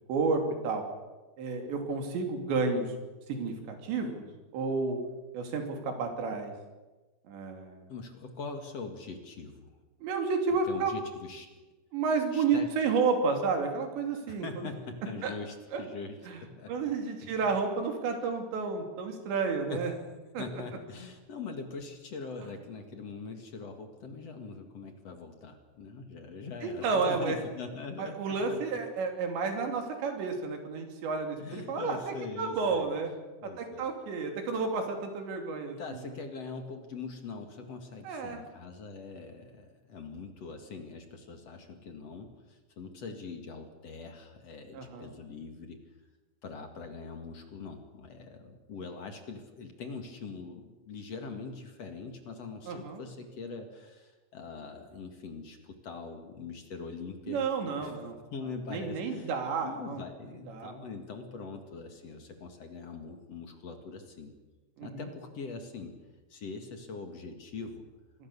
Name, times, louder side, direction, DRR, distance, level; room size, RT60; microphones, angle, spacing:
voice 1, 0.1-0.8 1.4-2.9 3.3-4.2 4.5-5.0 5.3-6.5 7.3-7.9 10.0-11.1 11.9-14.7 15.2-15.3 15.7-15.8 16.3-16.4 16.7-19.9 20.3-20.5 26.6-27.4 28.0-32.0 32.4-33.1 33.4-35.8 38.1-38.4 44.7-45.1 52.7-53.0 57.3-58.2 58.7-60.0 60.5-60.7 64.8-65.1, right 4 dB, 70° right, 4 dB, 5.2 m, -31 dB
voice 2, 7.9-9.8 10.7-11.5 12.3-12.7 14.3-16.9 17.2-17.5 19.7-20.1 20.4-28.6 31.4-32.9 33.4-33.9 35.8-45.8 46.4-57.4 57.8-58.0 58.3-59.3 59.6-64.4 64.8-66.0 66.3-67.8, left 4 dB, 45° left, 5 dB, 2.2 m, -42 dB
26.5 x 20.5 x 6.9 m, 1.2 s
omnidirectional pair, 5.3 m